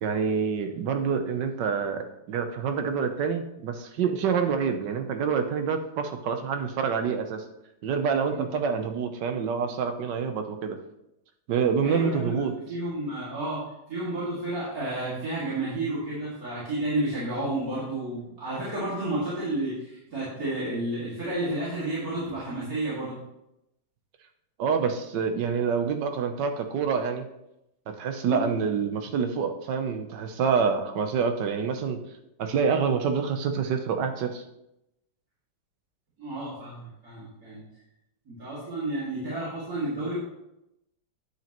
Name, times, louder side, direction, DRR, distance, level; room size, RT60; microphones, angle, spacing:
voice 1, 0.0-7.4 7.8-10.8 11.5-12.5 24.6-27.2 27.9-32.0 32.4-34.4, right 6 dB, 85° right, 7 dB, 1.5 m, -27 dB
voice 2, 11.8-13.6 13.9-23.2 28.3-28.5 36.2-37.6 38.3-40.2, right 2 dB, 55° right, -9 dB, 2.9 m, -31 dB
10.0 x 7.9 x 3.0 m, 0.86 s
omnidirectional pair, 1.8 m